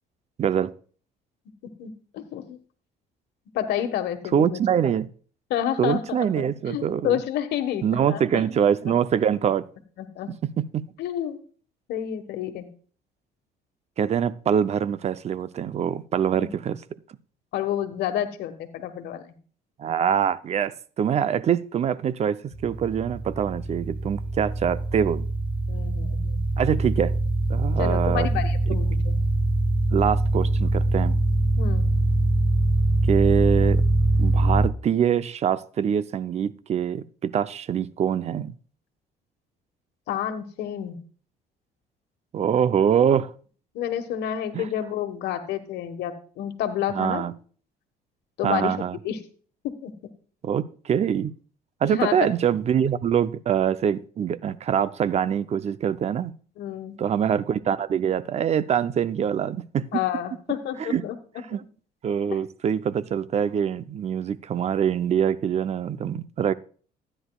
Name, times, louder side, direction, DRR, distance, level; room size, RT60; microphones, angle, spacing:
voice 1, 0.4-0.7 4.3-5.1 5.8-7.2 7.8-9.7 10.7-10.8 14.0-16.8 19.8-25.3 26.6-27.2 27.5-28.3 29.9-31.2 33.1-33.8 34.2-38.5 42.3-43.3 44.5-44.7 46.9-47.3 48.4-49.0 50.4-51.3 51.8-56.3 57.0-60.0 60.8-61.0 61.5-61.6 62.0-66.5, right 8 dB, 40° right, 0.6 m, -24 dB
voice 2, 1.6-2.6 3.5-4.6 5.5-8.5 10.0-10.3 11.0-11.4 11.9-12.7 16.3-16.5 17.5-19.3 25.7-26.4 27.8-29.2 31.6-31.9 40.1-41.0 43.7-47.2 48.4-48.8 49.0-49.2 49.6-49.9 51.8-52.3 56.6-57.0 59.9-61.4, left 10 dB, 80° left, 1.4 m, -29 dB
sound 1, 22.5-34.7, right 2 dB, 10° right, 1.2 m, -23 dB
13.0 x 10.0 x 2.3 m
cardioid pair, 110°, 17 cm